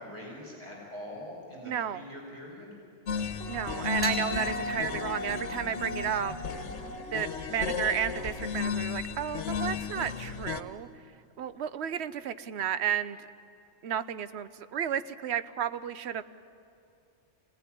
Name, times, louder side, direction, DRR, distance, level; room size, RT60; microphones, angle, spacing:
voice 1, 0.0-2.7, left 1 dB, 25° right, -3 dB, 5.1 m, -44 dB
voice 2, 1.7-2.0 3.5-6.3 7.1-10.9 11.4-13.2 13.8-16.2, right 8 dB, 65° right, 13 dB, 1.0 m, -32 dB
sound 1, 3.1-10.6, left 6 dB, 70° left, 1.4 m, -34 dB
Wind instrument woodwind instrument, 3.4-8.9, left 2 dB, 45° right, 2.8 m, -40 dB
sound 2, 4.0-10.6, left 1 dB, 5° left, 4.1 m, -43 dB
25.0 x 18.0 x 9.9 m, 2.6 s
omnidirectional pair, 1.2 m